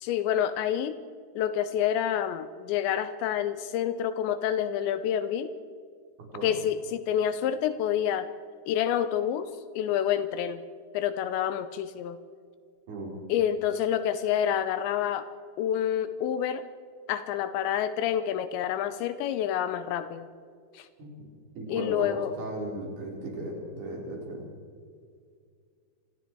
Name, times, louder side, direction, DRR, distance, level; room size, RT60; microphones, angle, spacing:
voice 1, 0.0-1.0 1.4-5.5 6.4-8.3 8.7-10.6 10.9-12.2 13.3-15.3 15.6-16.7 17.1-20.3 20.7-20.9 21.7-22.3, left 9 dB, 80° left, 12 dB, 2.9 m, -28 dB
voice 2, 21.6-24.5, right 1 dB, 55° right, -2 dB, 6.1 m, -36 dB
28.5 x 24.5 x 4.7 m, 2.2 s
omnidirectional pair, 5.4 m